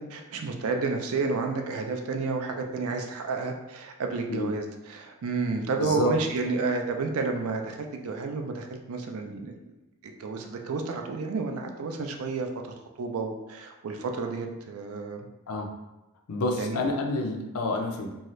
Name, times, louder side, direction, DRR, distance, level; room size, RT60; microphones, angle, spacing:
voice 1, 0.1-9.5 10.2-12.5 13.0-15.2 16.6-16.8, right 4 dB, 75° right, 4 dB, 0.4 m, -31 dB
voice 2, 5.8-6.1 15.5-15.7 16.3-18.1, left 1 dB, 85° left, 3 dB, 0.5 m, -28 dB
2.7 x 2.3 x 3.1 m, 0.98 s
head